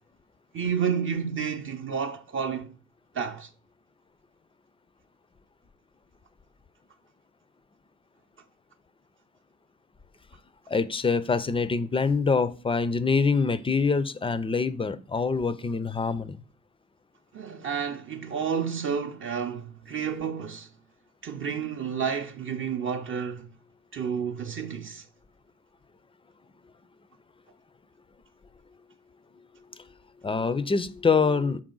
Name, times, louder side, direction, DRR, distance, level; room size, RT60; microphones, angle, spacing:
voice 1, 0.5-2.7 3.1-3.5 17.3-20.7 21.2-23.5 23.9-25.0, right 7 dB, 45° right, 0.5 m, -30 dB
voice 2, 10.7-16.4 30.2-31.6, left 4 dB, 20° left, 0.4 m, -25 dB
6.1 x 4.2 x 3.8 m
cardioid pair, 90°, 30 cm